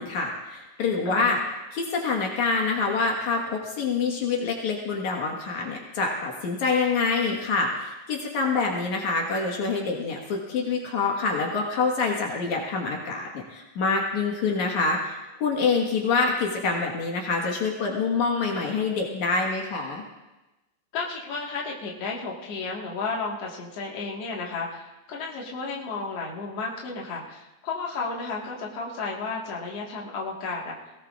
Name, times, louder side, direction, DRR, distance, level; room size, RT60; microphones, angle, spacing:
voice 1, 0.0-1.4 1.7-20.0, left 4 dB, 75° left, 0 dB, 2.9 m, -26 dB
voice 2, 1.0-1.4 14.6-14.8 20.9-30.8, left 4 dB, 55° left, -3 dB, 2.7 m, -33 dB
20.5 x 18.0 x 2.5 m, 1.1 s
omnidirectional pair, 3.4 m